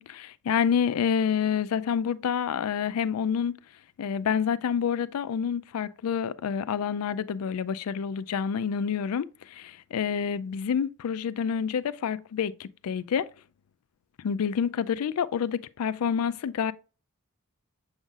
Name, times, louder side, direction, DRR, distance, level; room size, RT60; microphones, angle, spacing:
voice 1, 0.0-3.5 4.0-13.3 14.2-16.7, left 7 dB, 85° left, 0.4 m, -28 dB
7.1 x 5.5 x 2.4 m
head